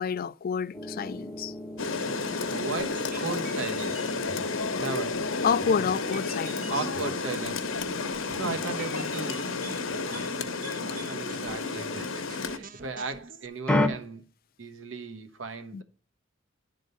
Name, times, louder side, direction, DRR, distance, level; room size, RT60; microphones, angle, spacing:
voice 1, 0.0-1.5 5.4-6.7 8.4-8.6 15.7-15.8, left 6 dB, 50° left, 0.3 m, -29 dB
sound 1, 0.7-12.2 13.7-13.9, left 1 dB, 5° left, 0.8 m, -36 dB
Rain, 1.8-12.6, left 4 dB, 90° left, 1.1 m, -31 dB
voice 2, 2.5-4.2 4.8-5.2 6.7-10.3 10.7-14.2 14.6-15.8, right 3 dB, 75° right, 1.1 m, -37 dB
sound 2, 2.8-13.5, right 4 dB, 45° right, 0.6 m, -46 dB
11.0 x 3.8 x 6.5 m
head